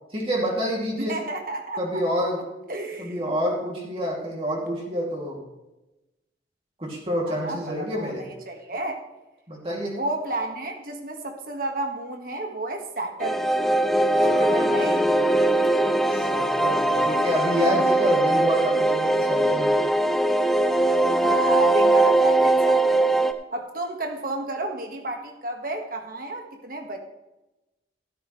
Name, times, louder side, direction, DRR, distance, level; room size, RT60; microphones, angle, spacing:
voice 1, 0.1-1.2 1.8-2.4 3.0-5.4 6.8-8.2 9.5-10.0 14.1-14.8 16.1-19.7, equal, 30° right, -3 dB, 2.6 m, -28 dB
voice 2, 1.0-2.0 2.7-3.2 7.2-9.0 9.9-13.5 14.2-15.2 21.2-23.0 23.5-27.0, right 2 dB, 50° right, 3 dB, 1.6 m, -32 dB
sound 1, 13.2-23.3, right 1 dB, ahead, 0.6 m, -21 dB
13.0 x 13.0 x 3.2 m, 0.99 s
head